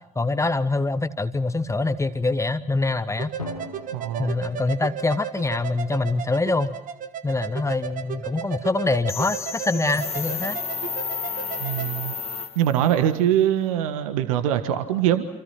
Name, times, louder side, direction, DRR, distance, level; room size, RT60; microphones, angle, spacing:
voice 1, 0.1-3.3 4.2-6.7 7.2-10.6, left 3 dB, 15° left, 12 dB, 1.3 m, -24 dB
sound 1, 3.2-11.9, right 9 dB, 50° right, 1.6 m, -35 dB
Drum, 3.4-6.1, left 3 dB, 90° left, 1.8 m, -41 dB
voice 2, 3.9-4.3 11.6-12.1 12.5-15.3, right 11 dB, 70° right, 11 dB, 1.5 m, -23 dB
sound 2, 9.1-13.0, left 5 dB, 35° left, 1.7 m, -32 dB
28.0 x 28.0 x 5.9 m, 0.84 s
figure-of-eight pair, 50°, 18 cm